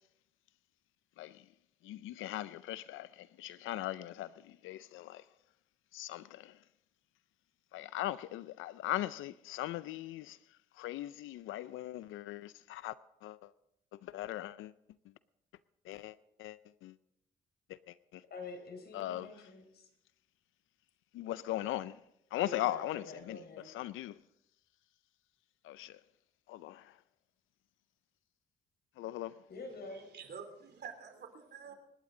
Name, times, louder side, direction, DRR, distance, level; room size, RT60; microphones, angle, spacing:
voice 1, 1.2-1.5 1.8-5.3 5.9-6.6 7.7-13.0 13.2-13.5 13.9-14.7 15.8-17.0 17.7-18.2 18.9-19.3 21.1-22.0 22.3-24.2 25.6-26.0 26.5-27.0 29.0-29.3, left 14 dB, 85° left, 0.5 m, -40 dB
voice 2, 18.3-19.9 22.3-23.7 29.5-30.1, left 3 dB, 55° left, 4.5 m, -47 dB
voice 3, 29.9-31.7, right 6 dB, 55° right, 3.2 m, -48 dB
26.0 x 12.0 x 3.8 m
cardioid pair, 90°, 20 cm